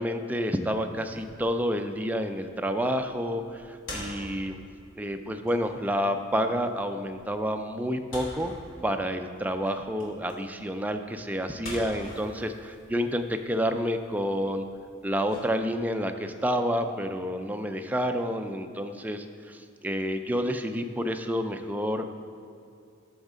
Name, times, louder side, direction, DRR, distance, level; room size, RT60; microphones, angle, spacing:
voice 1, 0.0-4.6 5.0-8.5 8.8-14.7 15.0-22.1, equal, 10° right, 6 dB, 0.4 m, -29 dB
sound 1, 0.9-16.0, left 1 dB, 70° left, 2.3 m, -46 dB
13.0 x 6.4 x 3.7 m, 2.4 s
head